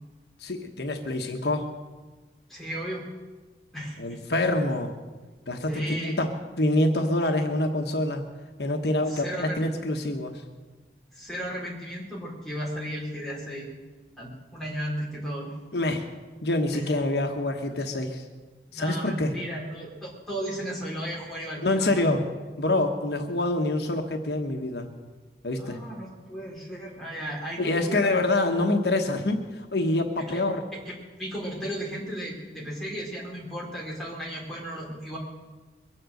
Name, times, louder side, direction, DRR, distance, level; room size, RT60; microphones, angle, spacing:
voice 1, 0.4-1.7 4.0-4.9 5.5-6.3 6.6-8.2 8.6-10.4 15.7-16.0 16.4-18.2 18.7-19.3 21.6-22.2 22.6-24.9 25.4-25.8 27.6-30.6, left 2 dB, 70° left, 4 dB, 1.2 m, -26 dB
voice 2, 2.5-3.1 3.7-4.2 5.7-6.2 9.1-9.6 11.1-13.7 14.2-15.5 16.7-16.9 18.7-22.2 25.6-28.1 30.2-30.4 30.9-35.2, equal, ahead, -5 dB, 4.2 m, -35 dB
22.5 x 7.7 x 7.8 m, 1.3 s
head